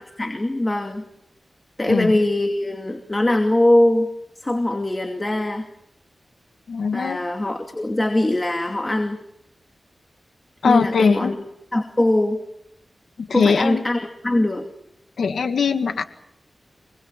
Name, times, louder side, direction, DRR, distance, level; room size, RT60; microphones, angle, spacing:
voice 1, 0.2-1.0 1.8-4.1 4.4-5.7 6.9-9.2 10.6-11.4 11.7-12.4 13.3-14.7, left 1 dB, 20° left, 4 dB, 2.6 m, -21 dB
voice 2, 1.8-2.2 6.7-7.2 10.6-11.3 13.2-13.8 15.2-16.0, left 5 dB, 90° left, 5 dB, 1.9 m, -21 dB
26.5 x 21.0 x 7.5 m, 0.79 s
wide cardioid pair, 80°, 0 cm